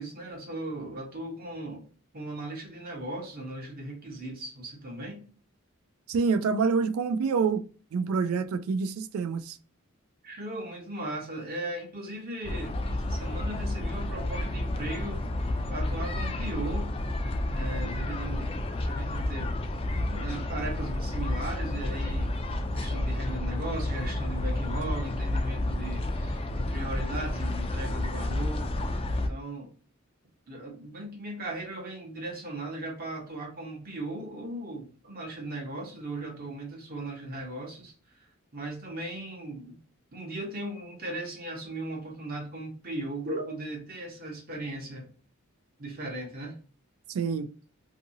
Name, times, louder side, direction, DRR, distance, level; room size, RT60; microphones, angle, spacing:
voice 1, 0.0-1.9 2.1-5.2 10.2-15.2 15.7-16.9 17.5-18.6 18.8-19.5 20.0-22.4 22.7-28.7 29.1-29.7 30.5-37.9 38.5-39.8 40.1-45.1 45.8-46.6, right 1 dB, 45° right, 0.8 m, -37 dB
voice 2, 6.1-9.6 47.1-47.5, right 5 dB, 85° right, 0.3 m, -27 dB
sound 1, 12.4-29.3, left 1 dB, 30° left, 0.3 m, -30 dB
2.7 x 2.6 x 2.7 m
head